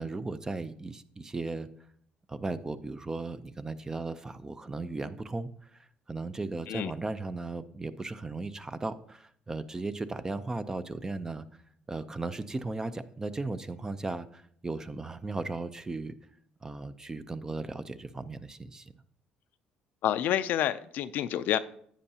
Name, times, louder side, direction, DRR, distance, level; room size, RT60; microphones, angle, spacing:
voice 1, 0.0-1.7 2.3-11.5 11.9-16.2 16.6-18.9, right 3 dB, 20° right, 13 dB, 0.5 m, -36 dB
voice 2, 20.0-21.6, left 11 dB, 70° left, 13 dB, 0.4 m, -28 dB
10.0 x 8.7 x 2.8 m, 0.64 s
cardioid pair, 95°, 3 cm